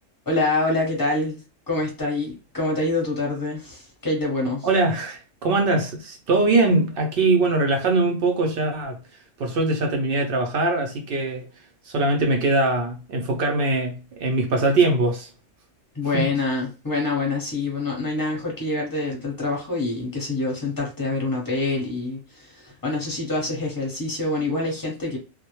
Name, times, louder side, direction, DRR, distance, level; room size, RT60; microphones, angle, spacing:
voice 1, 0.3-1.4 1.7-4.7 15.9-25.2, left 2 dB, 20° left, 0.7 m, -26 dB
voice 2, 4.6-9.0 9.4-11.5 11.9-15.3 16.1-16.3, right 2 dB, 65° right, 0.6 m, -22 dB
2.2 x 2.0 x 2.9 m
omnidirectional pair, 1.4 m